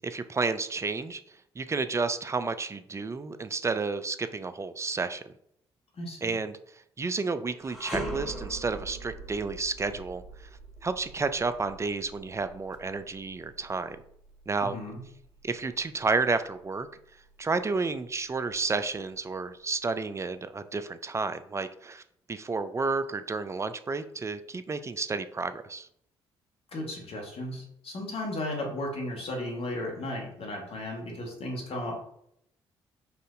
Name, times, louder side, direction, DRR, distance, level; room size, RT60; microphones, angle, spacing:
voice 1, 0.0-1.2 1.6-5.3 6.2-6.6 7.0-10.2 10.8-14.0 14.5-14.8 15.4-16.9 17.4-22.0 22.3-25.9, right 4 dB, 20° right, 11 dB, 0.4 m, -31 dB
voice 2, 6.0-6.4 14.6-15.0 26.7-32.0, left 1 dB, 45° left, 0 dB, 1.3 m, -35 dB
sound 1, 7.6-16.9 17.3-17.5 18.3-19.2, right 1 dB, ahead, 1.3 m, -42 dB
5.6 x 2.5 x 2.5 m, 0.71 s
hypercardioid pair, 45°, 13 cm